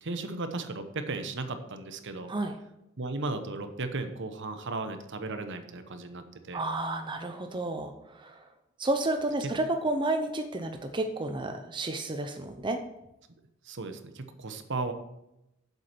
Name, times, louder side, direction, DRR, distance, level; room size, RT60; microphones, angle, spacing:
voice 1, 0.0-2.3 3.0-6.6 9.4-9.5 13.6-14.9, right 3 dB, 60° right, 8 dB, 1.0 m, -35 dB
voice 2, 6.5-8.5 8.8-12.8, right 2 dB, 20° right, 6 dB, 0.6 m, -31 dB
8.2 x 7.7 x 6.0 m, 0.87 s
head